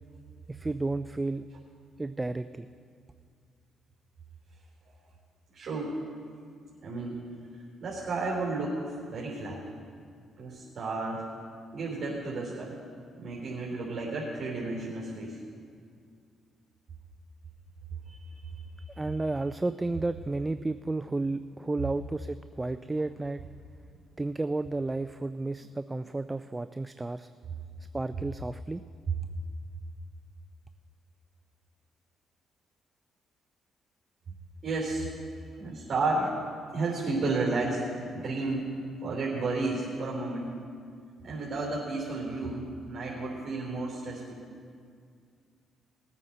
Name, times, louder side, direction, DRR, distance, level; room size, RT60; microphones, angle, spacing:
voice 1, 0.5-1.4 2.0-2.7 19.0-23.4 24.2-27.3 27.9-28.8, right 2 dB, 15° right, 11 dB, 0.3 m, -32 dB
voice 2, 5.5-6.0 6.8-7.2 7.8-8.8 9.1-9.6 10.4-11.3 11.7-12.7 13.2-15.4 18.1-18.6 34.6-35.1 35.6-36.3 36.7-37.8 38.1-38.7 39.0-40.5 41.2-44.4, right 3 dB, 50° right, -5 dB, 3.4 m, -32 dB
20.0 x 8.8 x 4.3 m, 2.2 s
cardioid pair, 90°, 0 cm